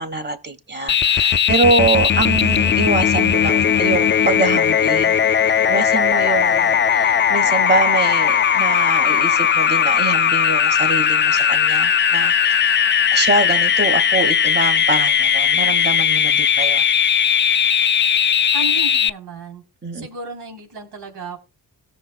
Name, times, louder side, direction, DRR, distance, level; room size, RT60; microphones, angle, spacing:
voice 1, 0.0-5.2 5.6-16.8 19.8-20.1, right 3 dB, 25° right, 1.9 m, -24 dB
sound 1, 0.9-19.1, left 8 dB, 30° left, 0.4 m, -17 dB
voice 2, 18.5-19.6 19.9-21.4, right 3 dB, 70° right, 3.8 m, -33 dB
17.5 x 6.6 x 2.2 m
supercardioid pair, 45°, 42 cm